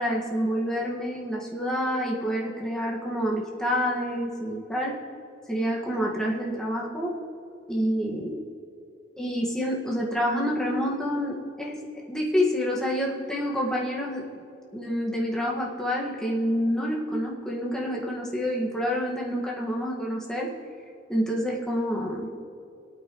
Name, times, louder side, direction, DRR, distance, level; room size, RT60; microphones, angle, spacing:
voice 1, 0.0-5.0 5.5-7.1 7.7-8.4 9.2-14.4 14.7-20.5 21.1-22.3, equal, 5° left, -4 dB, 1.8 m, -28 dB
20.0 x 9.2 x 3.2 m, 2.6 s
head